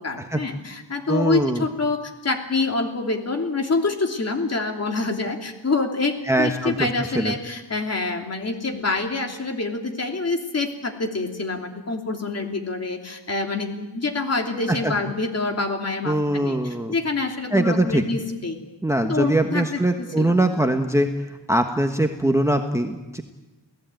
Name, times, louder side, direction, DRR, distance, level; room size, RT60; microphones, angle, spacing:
voice 1, 0.0-18.6 19.1-20.3, left 3 dB, 35° left, 4 dB, 3.1 m, -26 dB
voice 2, 1.1-1.6 6.2-6.9 7.1-7.3 14.7-14.9 16.0-16.9 17.5-18.0 18.8-21.1 21.5-23.2, right 1 dB, 5° right, 5 dB, 1.3 m, -22 dB
28.5 x 18.0 x 9.1 m, 1.1 s
wide cardioid pair, 150°, 44 cm